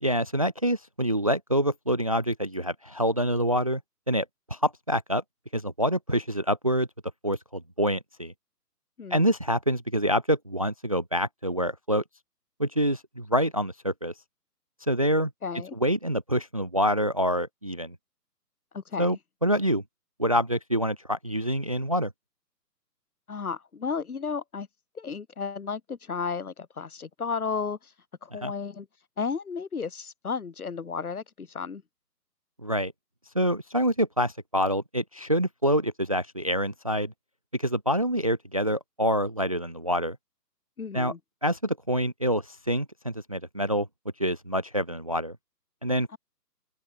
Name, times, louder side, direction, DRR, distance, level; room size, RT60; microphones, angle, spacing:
voice 1, 0.0-3.8 4.1-5.2 5.5-6.9 7.2-8.3 9.1-12.0 12.6-14.1 14.9-15.3 15.8-17.9 19.0-19.2 19.4-19.8 20.2-22.1 28.4-28.5 32.6-32.9 33.3-37.1 37.5-40.2 40.9-41.1 41.4-43.9 44.2-45.4 45.8-46.1, equal, 20° right, 0.7 m, -26 dB
voice 2, 9.0-9.3 15.4-15.8 18.7-19.1 23.3-24.7 24.9-27.9 28.2-28.9 29.2-31.8 40.8-41.2, left 5 dB, 60° left, 7.7 m, -33 dB
open air
hypercardioid pair, 170°, 49 cm